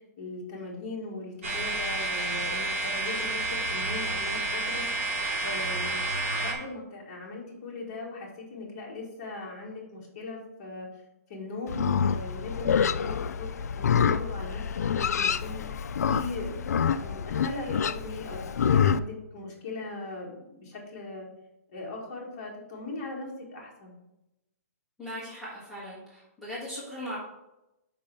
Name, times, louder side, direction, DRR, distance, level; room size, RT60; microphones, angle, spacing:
voice 1, 0.2-4.9 5.4-10.9 11.3-13.5 13.7-14.6 14.9-15.6 16.1-21.3 21.7-23.9, left 2 dB, 25° left, -3 dB, 1.9 m, -39 dB
sound 1, 1.4-6.5, right 2 dB, 60° right, 2.6 m, -30 dB
Livestock farm animals working animals, 11.7-19.0, left 7 dB, 85° left, 0.3 m, -27 dB
voice 2, 25.0-27.2, equal, ahead, -11 dB, 1.7 m, -39 dB
5.5 x 5.4 x 5.4 m, 0.91 s
hypercardioid pair, 175°, 8 cm